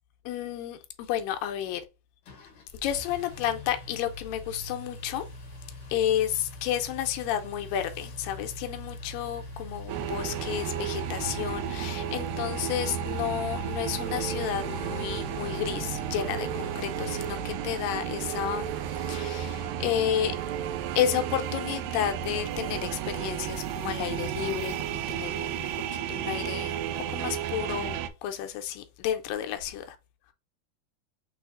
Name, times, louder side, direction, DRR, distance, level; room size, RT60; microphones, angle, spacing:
voice 1, 0.3-1.8 2.8-5.2 5.9-20.4 21.0-25.7 26.1-30.0, left 10 dB, 80° left, 2.1 m, -31 dB
Engine, 2.2-18.0, left 1 dB, 60° left, 1.4 m, -42 dB
sound 1, 9.9-28.1, right 9 dB, 85° right, 2.0 m, -33 dB
6.2 x 3.3 x 2.4 m
omnidirectional pair, 4.4 m